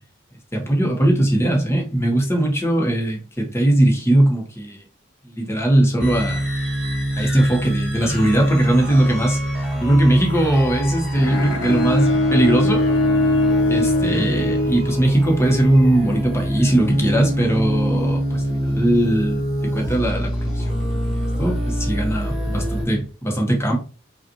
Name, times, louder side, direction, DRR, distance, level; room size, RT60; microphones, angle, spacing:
voice 1, 0.5-4.8 5.2-6.4 7.1-9.4 9.7-12.8 13.7-23.8, right 1 dB, 15° left, 1.0 m, -20 dB
sound 1, 6.0-22.8, equal, 5° right, 1.3 m, -24 dB
Bowed string instrument, 11.2-15.4, left 2 dB, 75° left, 0.7 m, -21 dB
5.2 x 2.5 x 2.8 m
head